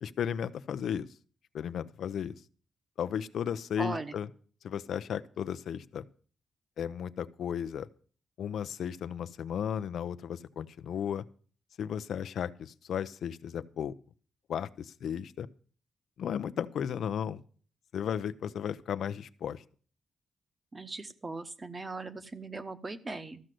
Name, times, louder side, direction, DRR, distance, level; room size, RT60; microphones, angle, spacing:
voice 1, 0.0-1.1 1.5-2.4 3.0-4.3 4.6-6.0 6.8-7.9 8.4-11.2 11.8-13.9 14.5-15.5 16.2-17.4 17.9-19.6, left 8 dB, 75° left, 13 dB, 0.6 m, -34 dB
voice 2, 3.8-4.1 20.7-23.4, right 3 dB, 25° right, 11 dB, 1.0 m, -39 dB
14.0 x 6.4 x 7.7 m, 0.42 s
wide cardioid pair, 130°, 0 cm